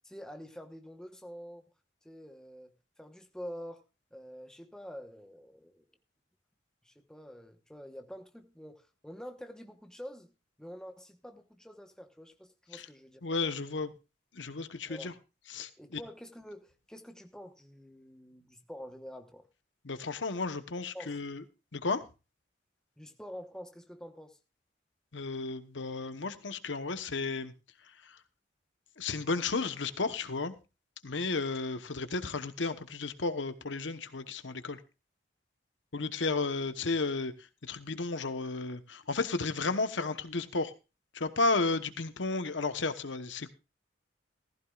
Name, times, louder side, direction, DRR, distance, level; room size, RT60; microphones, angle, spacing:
voice 1, 0.0-1.6 2.0-2.7 3.0-3.8 4.1-5.8 6.8-10.3 10.6-13.2 14.9-15.1 15.8-19.5 20.9-21.2 23.0-24.4, equal, 5° left, 1.1 m, -47 dB
voice 2, 13.2-13.9 14.3-15.1 15.5-16.0 19.8-21.4 21.7-22.0 25.1-27.5 27.9-28.2 29.0-30.5 31.0-34.8 35.9-37.3 37.6-40.7 41.1-43.5, left 3 dB, 80° left, 1.1 m, -33 dB
15.5 x 15.0 x 2.4 m
head